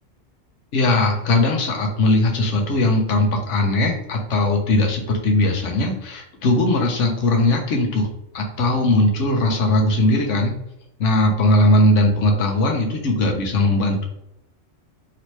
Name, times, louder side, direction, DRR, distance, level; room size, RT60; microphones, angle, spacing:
voice 1, 0.7-8.1 8.3-10.5 11.0-14.0, left 1 dB, 75° left, 1 dB, 1.1 m, -19 dB
3.1 x 2.8 x 3.1 m, 0.81 s
omnidirectional pair, 1.3 m